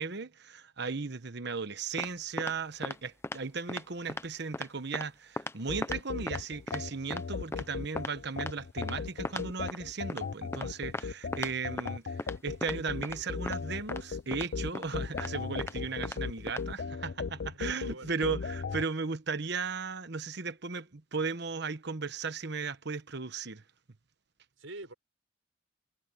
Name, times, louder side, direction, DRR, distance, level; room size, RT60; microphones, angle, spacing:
voice 1, 0.0-23.6, right 4 dB, 55° right, 1.1 m, -36 dB
sound 1, 2.0-2.1 2.4-2.5 2.8-3.0 3.2-3.4 3.7-3.8 4.1-4.2 4.5-4.7 4.9-5.1 5.4-5.5 5.8-6.0 6.3-6.4 6.7-6.8 7.1-7.2 7.5-7.6 8.0-8.1 8.4-8.5 8.8-8.9 9.2-9.4 9.7-9.8 10.1-10.2 10.5-10.7 10.9-11.0 11.3-11.5 11.8-11.9 12.2-12.3 12.6-12.7 13.0-13.2 13.5-13.6 13.9-14.0 14.3-14.5 14.7-14.9 15.2-15.3 15.6-15.7 16.0-16.2 16.5-16.6, left 2 dB, 15° left, 0.6 m, -36 dB
sound 2, 5.7-18.8, left 5 dB, 55° left, 0.5 m, -37 dB
voice 2, 17.5-18.1 24.6-24.9, right 2 dB, 75° right, 5.9 m, -46 dB
head